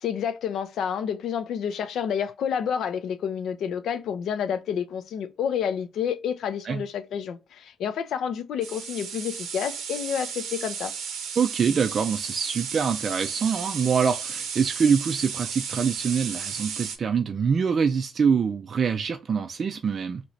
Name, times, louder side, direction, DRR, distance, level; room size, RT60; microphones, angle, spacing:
voice 1, 0.0-10.9, left 8 dB, 75° left, 0.5 m, -29 dB
sound 1, 8.6-17.0, right 7 dB, 85° right, 0.7 m, -34 dB
voice 2, 11.4-20.2, right 6 dB, 45° right, 0.3 m, -25 dB
2.9 x 2.6 x 3.2 m
cardioid pair, 90°, 0 cm